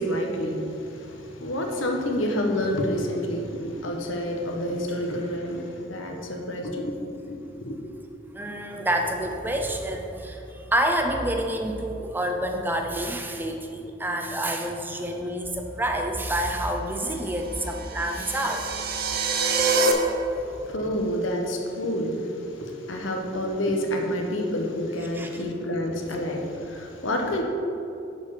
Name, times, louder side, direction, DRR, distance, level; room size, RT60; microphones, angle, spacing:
voice 1, 0.0-7.0 7.3-7.8 20.4-27.4, equal, 80° left, 2 dB, 1.1 m, -28 dB
voice 2, 8.3-18.7 25.1-25.3, right 1 dB, 10° right, 3 dB, 0.6 m, -28 dB
sound 1, 17.4-19.9, right 4 dB, 50° right, 0.8 m, -26 dB
10.5 x 4.7 x 4.8 m, 2.8 s
head